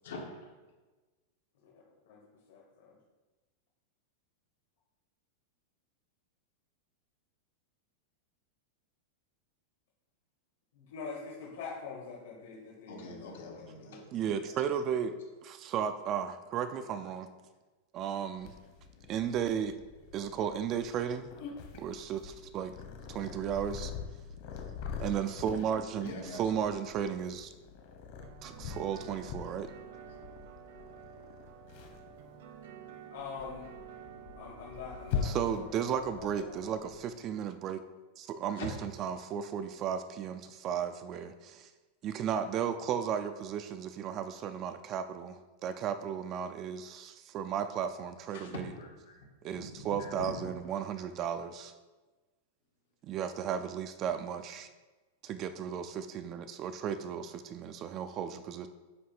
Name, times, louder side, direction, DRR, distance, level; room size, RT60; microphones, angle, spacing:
voice 1, 0.0-0.5 12.9-14.6 26.0-26.6 30.1-30.2 38.6-38.7 48.3-49.3 49.5-49.7 50.0-50.4, left 2 dB, 90° left, -2 dB, 2.3 m, -44 dB
voice 2, 1.6-3.0 10.7-14.0 25.1-25.5 25.7-25.8 33.1-33.7 34.4-35.7 36.1-36.7, left 5 dB, 65° left, -4 dB, 1.8 m, -45 dB
voice 3, 14.1-15.1 15.4-17.3 17.9-18.5 19.1-19.7 20.1-21.3 21.8-22.7 23.1-23.9 25.0-27.5 28.4-29.7 35.2-37.8 38.2-41.7 42.0-48.6 49.4-51.7 53.0-54.7 55.2-58.7, right 8 dB, 25° right, 10 dB, 0.3 m, -34 dB
Purr, 18.4-37.1, left 6 dB, 40° left, 1.1 m, -43 dB
sound 1, 28.2-36.1, right 9 dB, 60° right, 0.9 m, -51 dB
9.4 x 3.1 x 6.0 m, 1.2 s
supercardioid pair, 180°, 0 cm